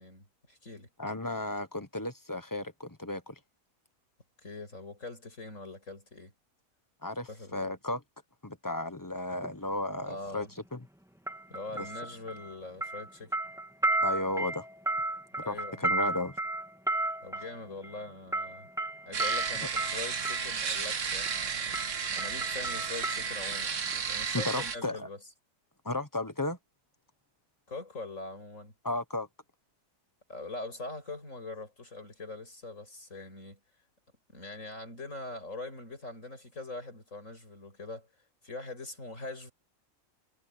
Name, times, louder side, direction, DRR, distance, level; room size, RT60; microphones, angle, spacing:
voice 1, 0.0-0.9 4.4-6.3 7.3-7.7 10.0-10.5 11.5-13.4 15.4-15.8 17.2-18.7 19.1-21.7 22.1-25.2 27.7-28.7 30.3-33.6 34.3-38.1 38.4-39.5, left 2 dB, 65° left, 7.0 m, -43 dB
voice 2, 1.0-3.3 7.0-8.0 8.4-10.5 10.7-10.8 14.0-14.7 15.5-16.4 24.3-25.1 25.8-26.6 28.8-29.3, left 2 dB, 15° left, 1.1 m, -34 dB
sound 1, 9.3-9.5 11.3-12.5 12.8-20.5 21.3-21.5 21.7-23.6 23.9-24.0, right 1 dB, ahead, 1.8 m, -33 dB
sound 2, 19.1-24.8, right 6 dB, 60° right, 1.6 m, -33 dB
omnidirectional pair, 1.5 m